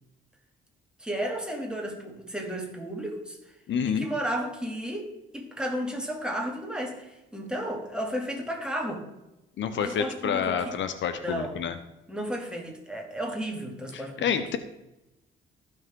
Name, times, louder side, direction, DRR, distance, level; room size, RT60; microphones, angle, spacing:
voice 1, 1.0-3.4 3.9-9.0 9.8-10.8 11.2-11.6 12.1-14.6, equal, 5° right, 0 dB, 2.5 m, -33 dB
voice 2, 3.7-4.1 9.6-11.7 14.2-14.6, left 7 dB, 70° left, 10 dB, 0.9 m, -28 dB
15.5 x 6.3 x 3.7 m, 0.94 s
cardioid pair, 90°, 20 cm